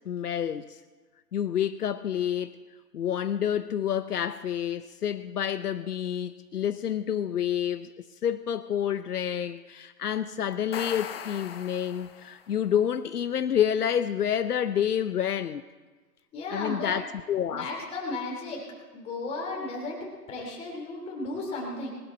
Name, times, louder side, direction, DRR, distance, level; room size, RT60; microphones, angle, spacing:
voice 1, 0.1-0.8 1.3-2.6 2.9-15.6 16.5-17.7, left 9 dB, 70° left, 0.7 m, -28 dB
sound 1, 10.5-12.5, left 8 dB, 40° left, 0.9 m, -39 dB
voice 2, 16.3-16.9 17.5-18.6 18.9-21.9, left 2 dB, 15° left, 3.0 m, -34 dB
20.0 x 12.0 x 4.4 m
hypercardioid pair, 140°, 47 cm